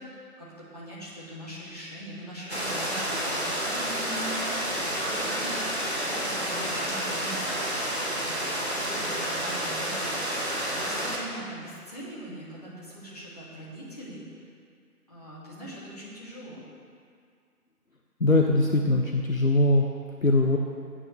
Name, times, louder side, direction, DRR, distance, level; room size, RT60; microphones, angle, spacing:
voice 1, 0.0-4.4 4.7-14.4 15.1-16.6, right 1 dB, 25° left, -9 dB, 2.2 m, -42 dB
sound 1, 2.5-11.2, equal, 45° right, 1.5 m, -30 dB
voice 2, 18.2-19.9 20.2-20.6, left 2 dB, 60° left, 1 dB, 0.9 m, -21 dB
17.0 x 9.8 x 3.2 m, 2.2 s
figure-of-eight pair, 175°, 47 cm